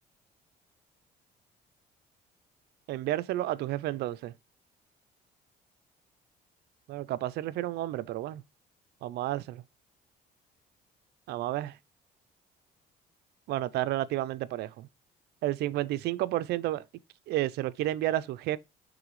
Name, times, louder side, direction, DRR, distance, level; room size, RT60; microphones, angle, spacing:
voice 1, 2.9-4.3 6.9-8.4 9.0-9.6 11.3-11.7 13.5-14.9 15.4-16.8 17.3-18.6, right 15 dB, 75° right, 0.5 m, -31 dB
7.7 x 3.3 x 4.8 m
cardioid pair, 110°, 17 cm